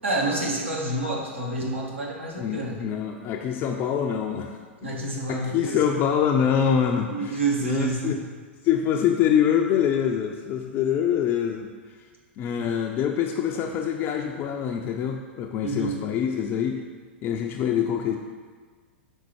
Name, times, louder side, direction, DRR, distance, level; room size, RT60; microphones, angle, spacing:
voice 1, 0.0-2.8 4.8-5.8 7.1-8.2 15.6-16.0, right 2 dB, 80° right, -2 dB, 1.2 m, -28 dB
voice 2, 2.4-5.0 5.3-8.2 8.6-11.7 12.4-16.8 17.2-18.2, left 8 dB, 30° left, 2 dB, 0.4 m, -25 dB
5.3 x 3.9 x 4.7 m, 1.5 s
figure-of-eight pair, 95°, 6 cm